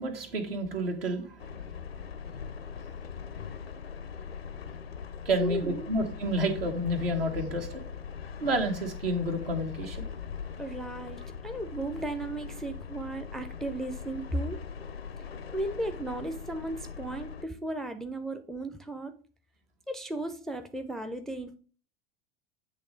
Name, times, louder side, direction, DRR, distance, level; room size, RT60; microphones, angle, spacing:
voice 1, 0.0-1.6 5.2-7.8 8.4-10.1, right 1 dB, 70° right, 4 dB, 1.4 m, -30 dB
sound 1, 1.4-17.4, left 6 dB, 80° left, 0.6 m, -41 dB
voice 2, 5.4-5.9 10.6-14.6 15.5-19.1 19.9-21.6, right 2 dB, ahead, 7 dB, 0.4 m, -35 dB
8.2 x 3.2 x 5.1 m, 0.41 s
figure-of-eight pair, 80°, 30 cm